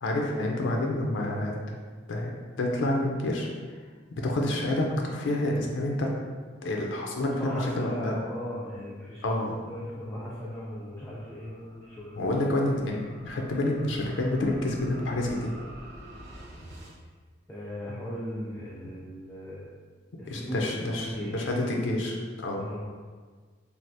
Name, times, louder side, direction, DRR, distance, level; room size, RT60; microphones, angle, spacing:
voice 1, 0.0-1.8 2.1-2.3 2.6-3.5 4.1-6.1 6.6-8.1 9.2-9.6 12.2-15.5 20.3-22.7, left 1 dB, 80° left, 0 dB, 0.4 m, -28 dB
voice 2, 7.2-9.4 9.7-12.3 17.5-19.7 20.2-20.6 20.9-21.5 22.5-22.8, equal, 10° left, -8 dB, 0.3 m, -37 dB
sound 1, 9.1-17.0, equal, 60° right, 0.5 m, -49 dB
3.2 x 2.4 x 2.7 m, 1.5 s
head